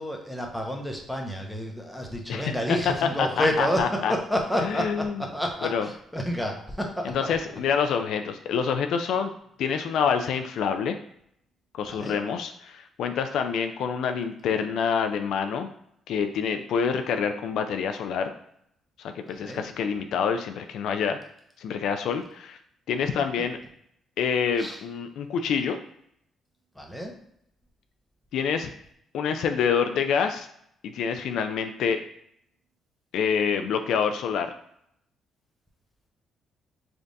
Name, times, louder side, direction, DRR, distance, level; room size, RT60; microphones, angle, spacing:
voice 1, 0.0-7.3 11.8-12.2 19.3-19.7 24.6-24.8 26.7-27.1, equal, 5° left, 1 dB, 0.8 m, -30 dB
voice 2, 3.2-4.1 4.6-5.2 5.6-5.9 7.0-9.3 9.6-11.0 11.7-15.7 16.1-18.3 19.0-21.2 21.6-22.6 22.9-23.6 24.2-25.8 28.3-28.7 29.1-30.5 30.8-32.0 33.1-34.5, left 6 dB, 80° left, 7 dB, 0.3 m, -27 dB
3.3 x 2.5 x 4.0 m, 0.73 s
cardioid pair, 90°, 0 cm